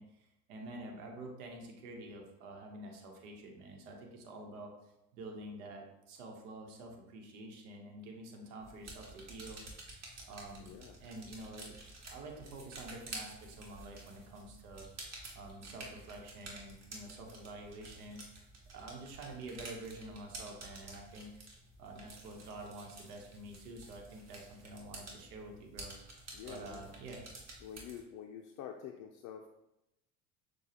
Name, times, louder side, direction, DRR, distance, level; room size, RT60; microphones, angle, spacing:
voice 1, 0.0-9.6 9.9-10.7 11.0-14.9 15.3-21.3 21.8-25.9 26.5-27.2, right 2 dB, 80° right, 2 dB, 1.0 m, -48 dB
sound 1, 8.6-28.0, right 2 dB, 35° right, 1.4 m, -51 dB
voice 2, 10.6-11.0 26.3-26.8 27.6-29.5, left 9 dB, 45° left, 2 dB, 0.4 m, -47 dB
6.4 x 2.3 x 2.8 m, 0.89 s
hypercardioid pair, 80°, 46 cm